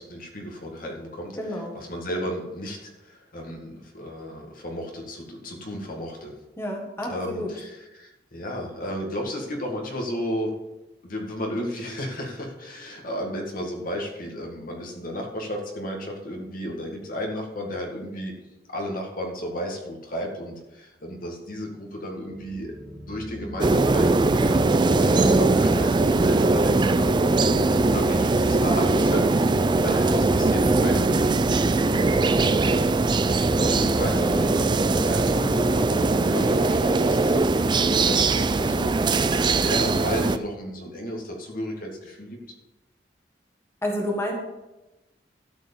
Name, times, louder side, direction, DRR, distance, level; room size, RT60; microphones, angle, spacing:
voice 1, 0.0-6.4 7.0-10.5 11.0-18.3 18.7-31.4 31.8-32.5 33.6-38.9 39.4-42.4, equal, 55° left, 1 dB, 1.9 m, -34 dB
voice 2, 1.4-1.7 6.6-7.5 37.7-38.0 43.8-44.3, left 1 dB, 15° left, 0 dB, 1.6 m, -30 dB
sound 1, 22.2-38.4, equal, 75° right, 2.5 m, -39 dB
sound 2, 23.6-40.4, right 3 dB, 25° right, 0.4 m, -21 dB
12.5 x 4.7 x 7.2 m, 0.99 s
head